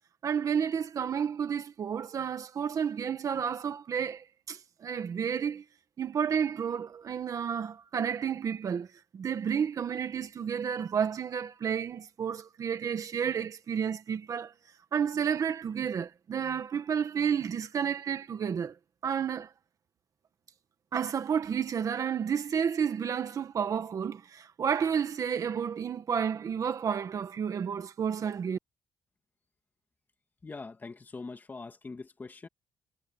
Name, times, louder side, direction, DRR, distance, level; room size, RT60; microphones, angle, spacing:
voice 1, 0.2-5.6 6.0-8.9 9.1-14.5 14.9-18.7 19.0-19.5 20.9-28.6, right 7 dB, 45° right, 1.6 m, -31 dB
voice 2, 30.4-32.5, left 3 dB, 20° left, 2.4 m, -43 dB
cardioid pair, 150°, 8 cm